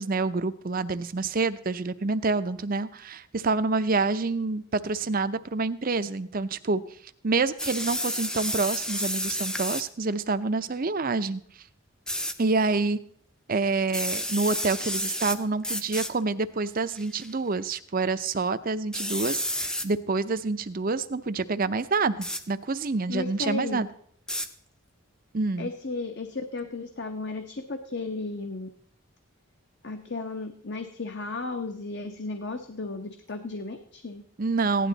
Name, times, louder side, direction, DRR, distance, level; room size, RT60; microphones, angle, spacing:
voice 1, 0.0-6.8 7.2-11.4 12.4-13.0 13.5-23.9 25.3-25.7 34.4-34.9, right 3 dB, 40° right, 12 dB, 0.6 m, -27 dB
sound 1, 7.6-9.9 12.1-12.3 13.9-15.4 15.6-16.1 16.9-17.3 18.9-19.9 22.2-22.4 24.3-24.5, equal, 5° left, 0.6 m, -30 dB
voice 2, 23.1-23.8 25.6-28.7 29.8-34.2, left 3 dB, 50° left, 7 dB, 0.9 m, -34 dB
16.0 x 11.0 x 4.0 m, 0.63 s
head